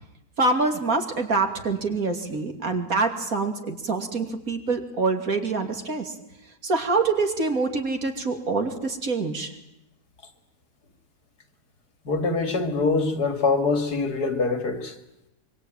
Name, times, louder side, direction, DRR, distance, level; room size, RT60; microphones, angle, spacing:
voice 1, 0.4-6.1 6.6-9.5, right 3 dB, 65° right, 3.2 m, -25 dB
voice 2, 12.0-14.9, left 3 dB, 85° left, 3.0 m, -24 dB
25.0 x 24.0 x 9.1 m
omnidirectional pair, 1.7 m